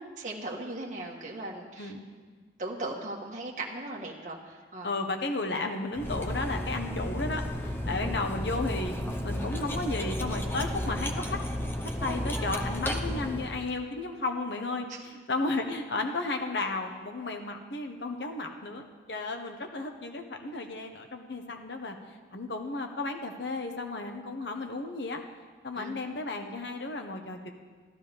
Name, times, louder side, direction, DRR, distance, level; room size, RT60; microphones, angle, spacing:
voice 1, 0.2-1.9 2.6-4.9 8.0-8.1 14.9-15.0 25.7-25.9, right 2 dB, 45° right, -1 dB, 1.5 m, -38 dB
voice 2, 4.8-8.9 9.2-11.4 12.0-22.0 22.3-25.2 25.6-27.5, left 2 dB, 70° left, 4 dB, 1.3 m, -33 dB
Cutlery silverware, 6.0-13.7, left 1 dB, 10° left, 0.7 m, -33 dB
13.5 x 13.0 x 5.3 m, 1.5 s
head